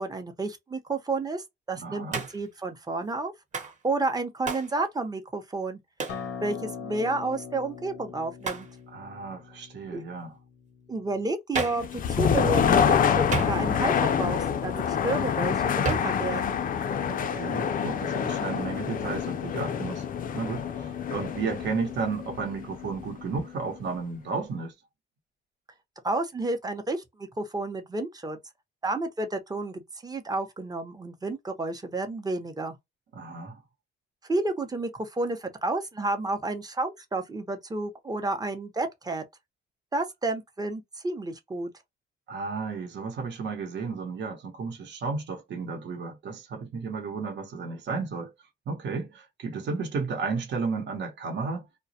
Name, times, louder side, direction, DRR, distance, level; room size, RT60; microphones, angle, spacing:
voice 1, 0.0-3.3 3.6-5.8 6.4-8.7 9.9-10.0 10.9-16.6 26.0-28.4 28.8-32.8 34.2-39.2 39.9-41.7, right 2 dB, 20° right, 0.7 m, -31 dB
voice 2, 1.8-2.2 8.9-10.4 17.1-20.0 20.3-24.7 33.1-33.6 42.3-48.3 48.7-51.7, right 4 dB, 65° right, 1.0 m, -33 dB
Hands, 2.1-2.5 3.5-3.8 4.5-4.7 6.0-6.3 8.4-8.7 11.5-11.9 13.3-13.9 15.8-16.2, right 4 dB, 40° right, 1.0 m, -31 dB
Acoustic guitar, 6.1-11.3, left 6 dB, 90° left, 0.6 m, -41 dB
sound 1, 11.8-23.6, left 7 dB, 45° left, 0.4 m, -27 dB
2.2 x 2.0 x 2.7 m
cardioid pair, 90°, 20 cm